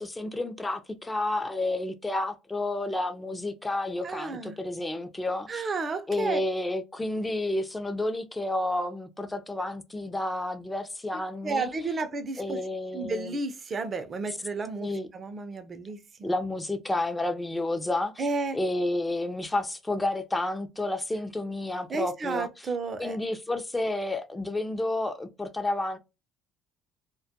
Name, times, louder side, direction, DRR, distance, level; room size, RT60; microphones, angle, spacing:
voice 1, 0.0-5.6 6.1-11.7 12.4-13.4 14.8-15.1 16.2-18.3 18.5-22.7 23.0-26.0, left 2 dB, 15° left, 0.5 m, -30 dB
voice 2, 4.0-4.6 5.5-6.4 11.4-12.6 12.9-16.3 18.2-18.6 21.9-23.2, right 4 dB, 40° right, 0.5 m, -32 dB
2.2 x 2.1 x 2.7 m
supercardioid pair, 80°, 0 cm